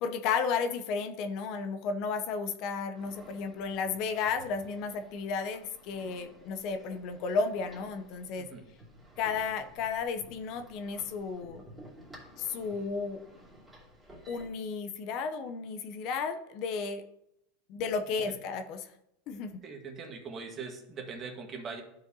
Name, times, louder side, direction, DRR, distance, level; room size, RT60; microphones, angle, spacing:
voice 1, 0.0-8.5 9.2-11.6 12.4-13.2 14.3-17.0 17.7-18.9 19.3-19.5, left 5 dB, 50° left, 8 dB, 0.7 m, -33 dB
sound 1, 2.9-14.5, equal, 10° right, 2.5 m, -54 dB
voice 2, 19.6-21.8, right 5 dB, 30° right, 3 dB, 1.5 m, -41 dB
12.0 x 4.9 x 2.8 m, 0.81 s
supercardioid pair, 125°, 0 cm